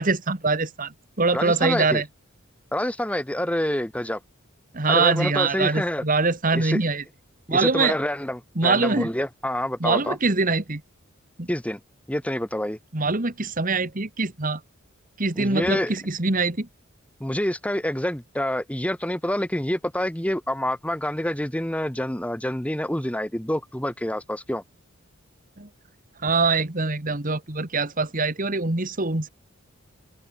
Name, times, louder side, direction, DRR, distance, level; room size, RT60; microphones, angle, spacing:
voice 1, 0.0-2.0 4.7-7.0 7.5-8.0 8.6-9.1 9.8-10.8 11.4-11.5 12.9-14.6 15.2-16.7 25.6-25.7 26.2-29.3, right 3 dB, 40° right, 1.8 m, -23 dB
voice 2, 1.3-2.0 2.7-4.2 4.9-6.0 6.5-6.8 7.5-10.2 11.5-11.8 12.1-12.8 15.4-15.9 17.2-24.6, left 1 dB, 5° left, 1.5 m, -27 dB
open air
head